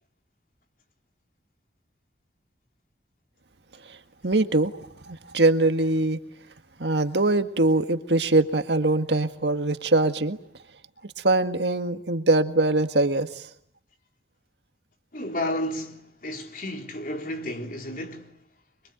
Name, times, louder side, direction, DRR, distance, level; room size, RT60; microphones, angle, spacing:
voice 1, 4.2-4.7 5.1-6.2 6.8-10.4 11.2-13.5, right 2 dB, 75° right, 1.8 m, -22 dB
voice 2, 15.1-18.4, left 1 dB, 50° left, 3.7 m, -32 dB
26.0 x 23.5 x 9.2 m
head